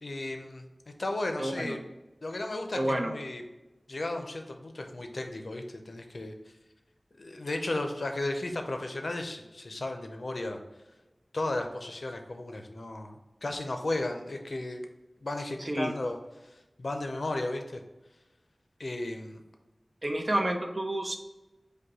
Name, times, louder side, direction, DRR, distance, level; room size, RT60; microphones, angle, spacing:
voice 1, 0.0-0.7 1.0-1.8 2.2-3.4 3.9-6.3 7.2-10.6 11.3-14.9 15.2-16.2 16.8-17.8 18.8-19.4, left 2 dB, 70° left, 5 dB, 0.5 m, -34 dB
voice 2, 1.4-1.8 2.7-3.1 15.6-15.9 20.0-21.2, right 1 dB, 45° right, 4 dB, 0.6 m, -29 dB
5.2 x 2.2 x 4.1 m, 1.0 s
wide cardioid pair, 60°, 0 cm